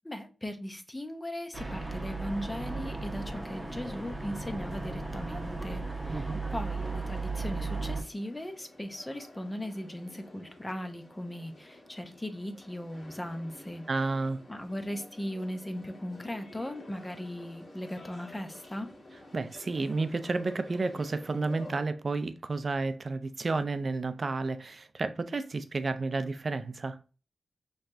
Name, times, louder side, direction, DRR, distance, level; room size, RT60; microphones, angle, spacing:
voice 1, 0.0-13.9 14.5-18.9, left 1 dB, 15° left, 0.9 m, -38 dB
sound 1, 1.5-8.0, right 3 dB, 15° right, 1.3 m, -36 dB
sound 2, 3.0-21.8, left 1 dB, 55° left, 1.7 m, -51 dB
voice 2, 6.1-6.4 13.9-14.4 19.3-27.0, right 3 dB, 50° right, 0.5 m, -31 dB
5.7 x 3.2 x 2.7 m
cardioid pair, 75°, 0 cm